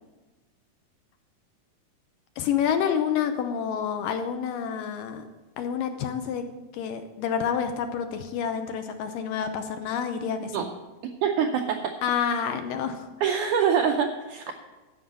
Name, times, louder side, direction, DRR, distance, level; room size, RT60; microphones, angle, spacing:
voice 1, 2.4-5.2 5.6-6.4 6.7-10.7 12.0-13.1, left 8 dB, 75° left, 7 dB, 2.2 m, -28 dB
voice 2, 11.2-11.9 13.2-14.5, right 7 dB, 85° right, 4 dB, 1.8 m, -24 dB
13.0 x 5.5 x 7.3 m, 1.2 s
omnidirectional pair, 4.4 m